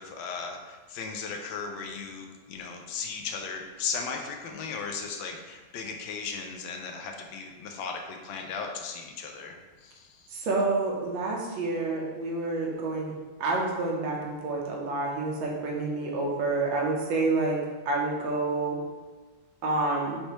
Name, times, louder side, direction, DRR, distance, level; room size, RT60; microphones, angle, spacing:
voice 1, 0.0-10.3, left 5 dB, 80° left, 3 dB, 1.4 m, -36 dB
voice 2, 10.3-13.1 13.4-17.6 17.9-18.8 19.6-20.2, right 3 dB, 75° right, -2 dB, 1.6 m, -28 dB
5.3 x 3.3 x 3.0 m, 1.3 s
omnidirectional pair, 2.1 m